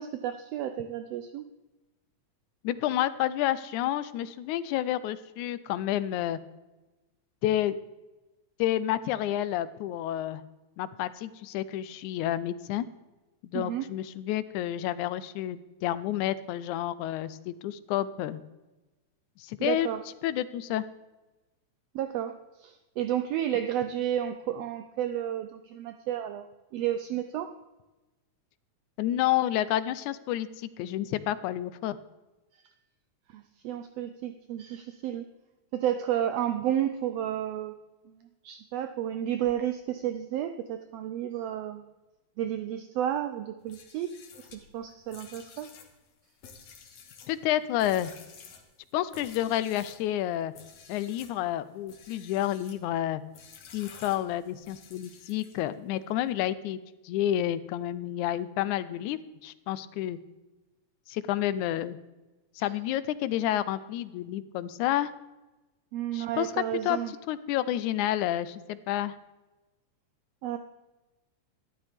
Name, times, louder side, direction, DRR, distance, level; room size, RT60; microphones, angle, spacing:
voice 1, 0.0-1.4 13.5-13.9 19.6-20.0 21.9-26.5 26.7-27.5 33.3-35.3 35.7-37.7 38.2-41.9 42.4-44.1 44.7-45.7 65.9-67.1 70.4-70.6, right 11 dB, 80° right, 8 dB, 1.4 m, -31 dB
voice 2, 2.6-6.4 7.4-7.8 8.6-10.4 10.8-12.9 13.4-18.4 19.4-19.9 20.2-20.9 29.0-32.0 47.3-48.1 48.9-50.5 50.9-53.2 53.7-60.2 61.1-62.0 62.6-65.1 66.1-66.5 66.8-67.0 67.3-69.2, left 12 dB, 80° left, 15 dB, 2.0 m, -30 dB
sound 1, 43.6-50.1 50.5-51.4 51.8-52.8 53.3-55.8, left 6 dB, 65° left, 2.4 m, -51 dB
12.5 x 12.5 x 3.5 m, 1.1 s
omnidirectional pair, 3.5 m